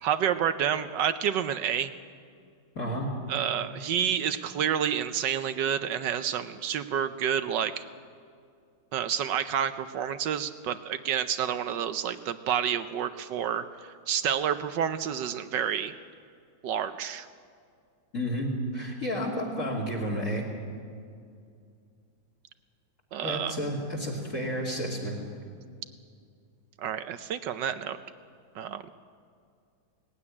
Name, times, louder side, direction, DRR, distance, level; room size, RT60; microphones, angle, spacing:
voice 1, 0.0-1.9 3.3-7.8 8.9-15.9 16.6-17.3 23.1-23.6 26.8-28.0 28.6-28.8, right 9 dB, 70° right, 11 dB, 1.2 m, -29 dB
voice 2, 2.7-3.1 18.1-20.4 23.2-25.2, equal, 40° left, -3 dB, 3.2 m, -31 dB
18.5 x 15.5 x 9.8 m, 2.3 s
omnidirectional pair, 2.2 m